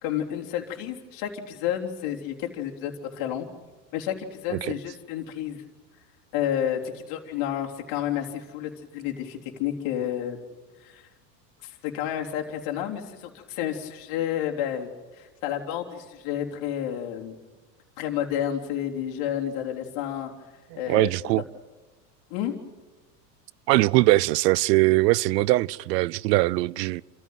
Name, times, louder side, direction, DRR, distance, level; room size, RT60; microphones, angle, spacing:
voice 1, 0.0-3.5 3.9-5.6 6.3-10.4 10.8-11.1 11.6-17.4 18.0-20.3 20.8-21.1 22.3-22.5, left 10 dB, 60° left, 3.5 m, -30 dB
voice 2, 20.7-21.4 23.7-27.0, right 19 dB, 75° right, 0.7 m, -21 dB
28.5 x 14.5 x 9.2 m
supercardioid pair, 105°, 50 cm